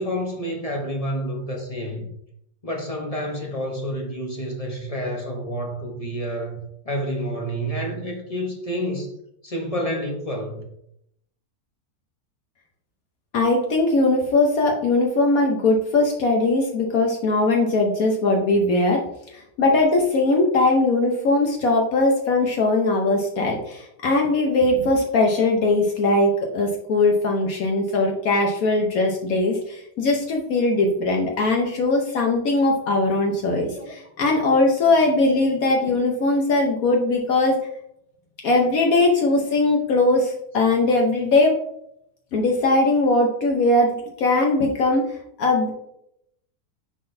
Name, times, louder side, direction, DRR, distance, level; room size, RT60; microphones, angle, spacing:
voice 1, 0.0-2.1 2.6-9.1 9.4-10.7 33.7-33.9, equal, 30° left, 0.7 m, -29 dB
voice 2, 13.3-19.0 19.3-37.6 38.4-41.5 42.3-45.7, left 2 dB, 70° left, 1.2 m, -20 dB
9.8 x 3.8 x 2.6 m
omnidirectional pair, 1.6 m